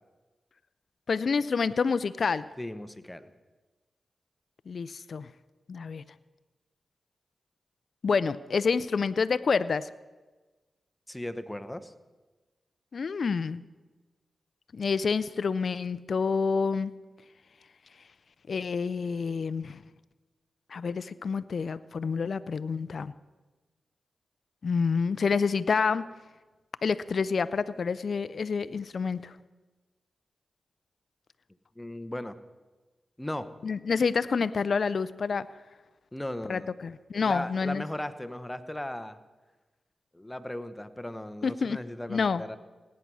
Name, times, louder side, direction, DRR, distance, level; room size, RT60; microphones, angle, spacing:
voice 1, 1.1-2.5 4.7-5.3 5.7-6.0 8.0-9.9 12.9-13.6 14.7-16.9 18.5-19.8 20.7-23.1 24.6-26.1 26.8-29.3 33.6-35.5 36.5-37.8 41.4-41.8 42.1-42.6, left 5 dB, 65° left, 16 dB, 0.5 m, -28 dB
voice 2, 2.6-3.3 11.1-11.9 31.8-32.4 33.2-33.5 36.1-36.7 37.1-39.2 40.1-42.6, left 1 dB, 15° left, 11 dB, 1.0 m, -37 dB
17.5 x 9.6 x 6.3 m, 1.2 s
cardioid pair, 45°, 0 cm